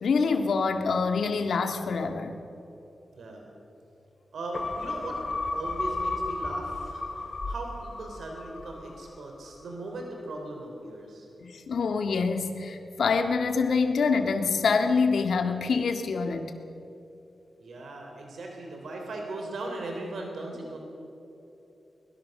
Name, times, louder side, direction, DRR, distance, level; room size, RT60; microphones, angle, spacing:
voice 1, 0.0-2.4 11.4-16.5, left 4 dB, 80° left, 5 dB, 1.8 m, -26 dB
voice 2, 3.1-3.4 4.3-5.2 5.5-11.3 17.6-20.8, right 2 dB, 85° right, 2 dB, 3.6 m, -38 dB
sound 1, 4.5-9.2 9.6-9.7, left 2 dB, 35° left, 2.4 m, -33 dB
23.0 x 21.0 x 6.6 m, 3.0 s
wide cardioid pair, 155°, 0 cm